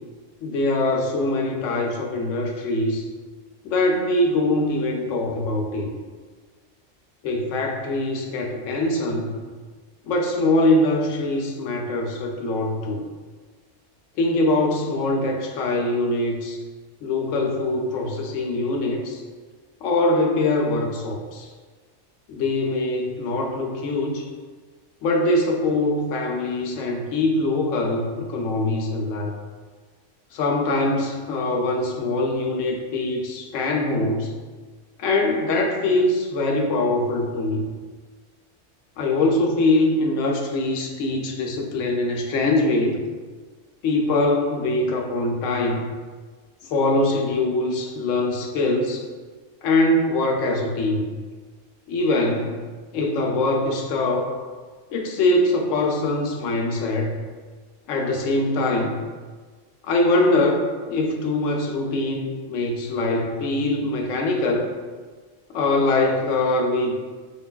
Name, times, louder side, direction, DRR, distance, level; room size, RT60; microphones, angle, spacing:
voice 1, 0.4-3.0 3.6-5.9 7.2-9.4 10.1-13.1 14.2-16.6 17.0-19.2 19.8-21.5 22.3-24.3 25.0-29.4 30.3-34.4 35.0-37.7 39.0-43.0 43.8-45.9 46.6-49.0 49.6-51.1 51.9-52.7 52.9-54.4 54.9-57.2 57.9-59.0 59.8-64.7 65.5-66.9, left 2 dB, 85° left, 2 dB, 1.0 m, -23 dB
5.7 x 2.5 x 2.2 m, 1.5 s
omnidirectional pair, 1.3 m